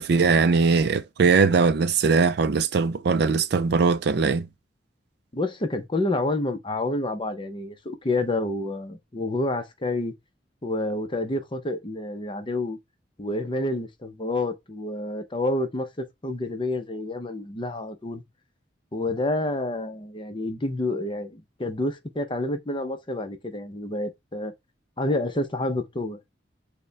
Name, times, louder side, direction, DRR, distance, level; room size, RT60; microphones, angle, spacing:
voice 1, 0.0-4.5, right 5 dB, 65° right, 0.4 m, -20 dB
voice 2, 5.3-10.1 10.6-12.8 13.2-18.2 18.9-24.5 25.0-26.2, left 2 dB, 25° left, 0.7 m, -28 dB
6.5 x 2.2 x 3.3 m
head